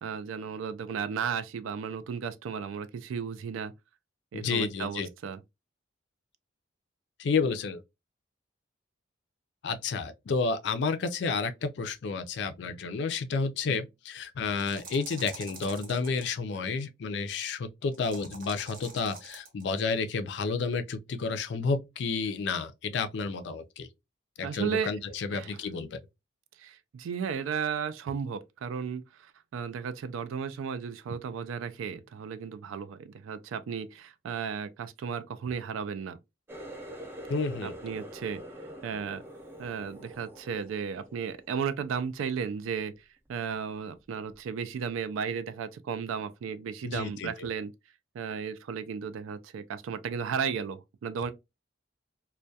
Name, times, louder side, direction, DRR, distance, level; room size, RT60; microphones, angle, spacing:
voice 1, 0.0-3.7 4.3-5.4 24.4-24.9 25.3-25.6 26.6-36.2 37.6-38.4 38.8-39.2 39.6-42.9 43.3-47.7 48.1-51.3, right 6 dB, 90° right, 0.3 m, -34 dB
voice 2, 4.3-5.1 7.2-7.8 9.6-23.9 24.4-26.0 37.3-37.7 46.8-47.5, left 4 dB, 60° left, 0.4 m, -31 dB
sound 1, 14.6-16.3 17.9-19.6, right 3 dB, 45° right, 0.7 m, -46 dB
Water tap faucet, 36.5-42.0 42.4-42.8 43.3-43.6 44.3-44.4, equal, 10° right, 0.4 m, -45 dB
2.2 x 2.1 x 2.6 m
head